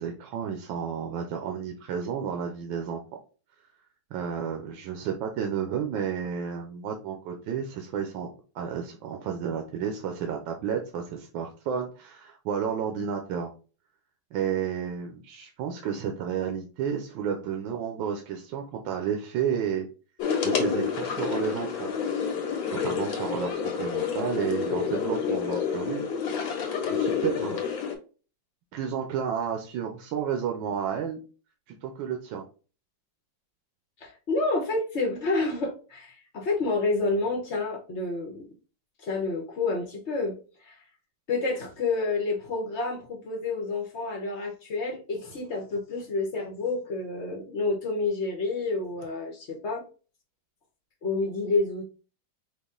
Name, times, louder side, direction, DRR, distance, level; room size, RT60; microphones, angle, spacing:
voice 1, 0.0-3.0 4.1-8.3 8.5-13.5 14.3-19.9 20.4-21.9 22.7-26.1 26.4-26.6 26.9-27.6 28.7-31.2 31.8-32.4, right 8 dB, 85° right, 3 dB, 1.4 m, -31 dB
sound 1, 20.2-28.0, left 6 dB, 80° left, 1.9 m, -29 dB
voice 2, 34.0-38.5 39.0-40.8 41.3-49.8 51.0-51.8, left 3 dB, 45° left, 1 dB, 0.9 m, -29 dB
5.0 x 2.4 x 3.7 m, 0.36 s
omnidirectional pair, 2.1 m